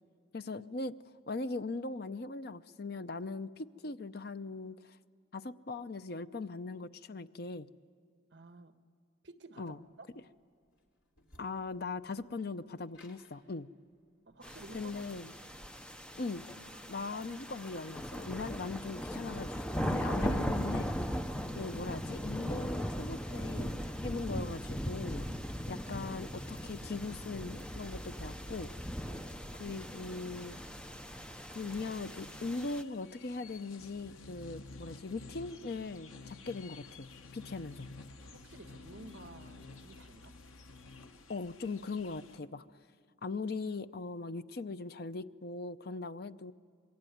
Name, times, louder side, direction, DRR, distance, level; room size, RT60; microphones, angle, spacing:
voice 1, 0.3-0.9 1.3-5.0 5.3-7.7 9.6-9.8 11.4-13.7 14.7-15.3 16.2-16.4 16.9-20.9 21.5-25.3 25.7-28.7 29.6-30.6 31.5-37.9 41.3-42.6 43.2-46.5, left 3 dB, 50° left, 12 dB, 0.6 m, -40 dB
voice 2, 8.3-8.7 9.2-10.1 14.3-15.1 21.3-21.5 29.1-29.4 38.2-40.3, right 2 dB, 55° right, 8 dB, 1.3 m, -53 dB
sound 1, 9.7-20.1, left 1 dB, 65° left, 3.7 m, -64 dB
sound 2, 14.4-32.8, equal, 5° left, 0.6 m, -38 dB
sound 3, 31.7-42.4, left 3 dB, 90° left, 1.1 m, -52 dB
26.0 x 22.0 x 9.3 m, 2.2 s
head